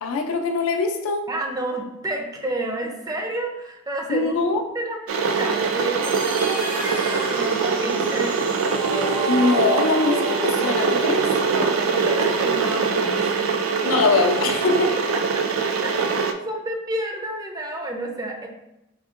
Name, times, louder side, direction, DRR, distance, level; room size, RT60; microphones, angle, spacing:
voice 1, 0.0-1.3 4.1-4.6 9.3-11.2 13.8-14.9, left 3 dB, 80° left, 3 dB, 0.4 m, -22 dB
voice 2, 1.3-4.3 4.7-8.5 11.4-13.6 15.8-15.9 16.5-18.5, right 1 dB, 20° right, 1 dB, 0.5 m, -30 dB
Water / Boiling, 5.1-16.3, right 5 dB, 75° right, 0.4 m, -23 dB
sound 1, 6.0-12.0, right 1 dB, 45° right, 1.0 m, -31 dB
3.6 x 3.4 x 2.5 m, 0.91 s
head